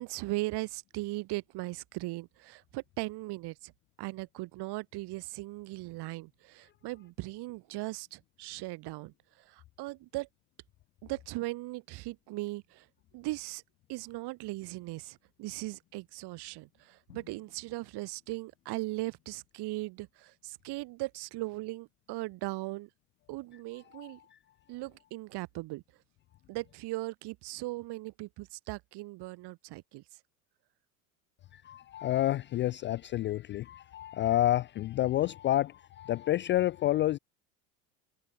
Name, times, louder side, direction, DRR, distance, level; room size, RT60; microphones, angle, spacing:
voice 1, 0.0-3.7 4.0-10.3 11.0-12.9 13.1-13.6 13.9-22.9 23.3-24.2 24.7-25.8 26.5-30.0, right 20 dB, 55° right, 2.9 m, -38 dB
Drum, 17.1-19.1, left 11 dB, 80° left, 6.3 m, -62 dB
voice 2, 23.9-24.4 31.5-37.2, left 14 dB, 25° left, 0.4 m, -29 dB
hypercardioid pair, 75°, 49 cm